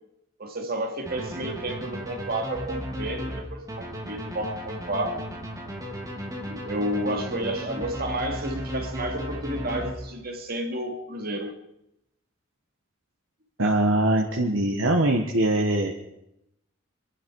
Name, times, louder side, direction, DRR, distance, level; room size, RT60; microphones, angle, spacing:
voice 1, 0.4-5.2 6.4-11.5, right 1 dB, 50° right, 4 dB, 2.3 m, -31 dB
sound 1, 1.1-10.4, equal, 20° right, 2.9 m, -35 dB
voice 2, 13.6-15.9, right 1 dB, 80° right, 1 dB, 1.5 m, -22 dB
25.5 x 11.5 x 4.8 m, 0.85 s
head